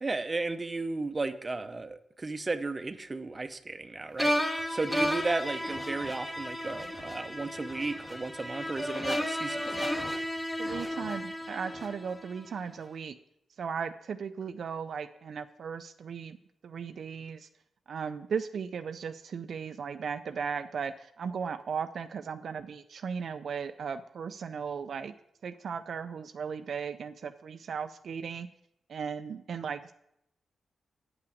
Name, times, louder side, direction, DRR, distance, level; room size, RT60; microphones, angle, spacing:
voice 1, 0.0-4.3 4.7-9.9, right 3 dB, 25° right, 10 dB, 0.6 m, -34 dB
sound 1, 4.2-12.4, equal, 10° left, 0.9 m, -33 dB
voice 2, 10.6-13.2 13.6-16.4 16.6-17.5 17.9-25.1 25.4-28.5 28.9-29.9, right 6 dB, 65° right, 9 dB, 0.4 m, -36 dB
8.1 x 5.8 x 6.3 m, 0.77 s
cardioid pair, 105°, 0 cm